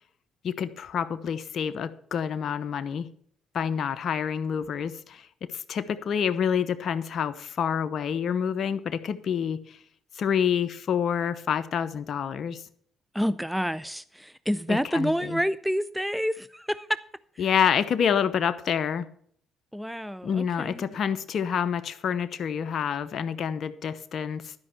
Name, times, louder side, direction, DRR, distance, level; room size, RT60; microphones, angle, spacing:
voice 1, 0.4-3.1 3.5-9.6 10.2-12.6 14.7-15.4 17.4-19.1 20.2-24.5, left 8 dB, 60° left, 0.8 m, -28 dB
voice 2, 13.1-17.0 17.4-17.5 19.7-20.9, equal, ahead, 0.4 m, -28 dB
12.0 x 5.4 x 7.7 m
supercardioid pair, 70°, 0 cm